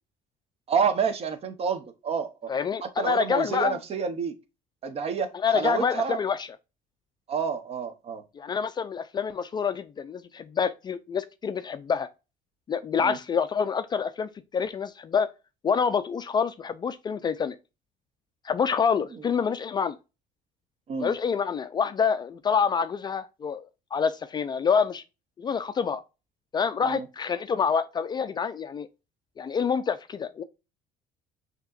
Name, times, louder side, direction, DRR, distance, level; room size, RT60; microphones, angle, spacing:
voice 1, 0.7-2.5 2.8-4.4 4.8-6.2 7.3-8.2 13.0-13.2 20.9-21.1 26.8-27.1, right 6 dB, 40° right, 0.7 m, -29 dB
voice 2, 2.5-3.8 5.3-6.5 8.4-12.1 12.7-15.3 15.6-17.6 18.4-20.0 21.0-23.6 23.9-25.0 25.4-26.0 26.5-28.9 29.4-30.4, left 6 dB, 30° left, 0.3 m, -27 dB
6.0 x 2.9 x 2.4 m
cardioid pair, 110°, 15 cm